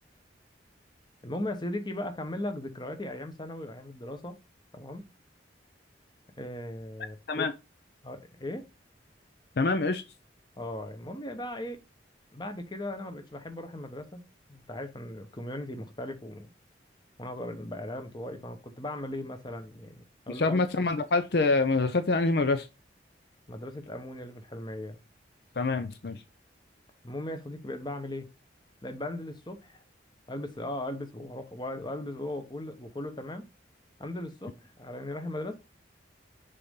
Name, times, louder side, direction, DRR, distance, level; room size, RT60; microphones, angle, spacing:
voice 1, 1.2-4.4 4.7-5.0 6.4-7.4 8.0-8.7 10.6-11.8 12.3-14.2 14.5-16.5 17.2-20.6 23.5-25.0 27.0-28.3 28.8-29.8 30.3-33.5 34.0-35.6, left 1 dB, 25° left, 1.1 m, -38 dB
voice 2, 9.6-10.0 20.3-22.7 25.6-26.2, left 3 dB, 55° left, 0.5 m, -26 dB
6.8 x 4.1 x 3.7 m
head